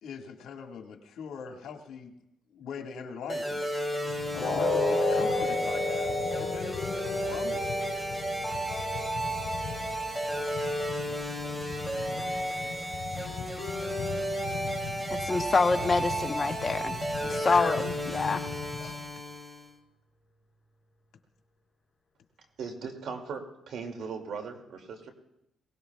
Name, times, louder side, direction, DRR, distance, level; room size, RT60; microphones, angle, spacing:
voice 1, 0.0-2.1 2.5-3.7 4.3-7.6 17.2-17.5 18.4-18.6, left 6 dB, 75° left, 3 dB, 1.7 m, -41 dB
sound 1, 3.3-19.7, equal, 15° right, 2.7 m, -33 dB
sound 2, 4.1-18.9, left 6 dB, 60° left, 3.1 m, -42 dB
sound 3, 4.4-10.4 10.8-11.0 11.4-11.5, left 2 dB, 10° left, 3.4 m, -32 dB
voice 2, 15.2-17.0 17.3-18.5, left 4 dB, 30° left, 7 dB, 1.0 m, -26 dB
voice 3, 22.6-25.1, right 5 dB, 70° right, 4 dB, 2.4 m, -38 dB
22.5 x 18.0 x 2.4 m, 0.81 s
cardioid pair, 90°, 0 cm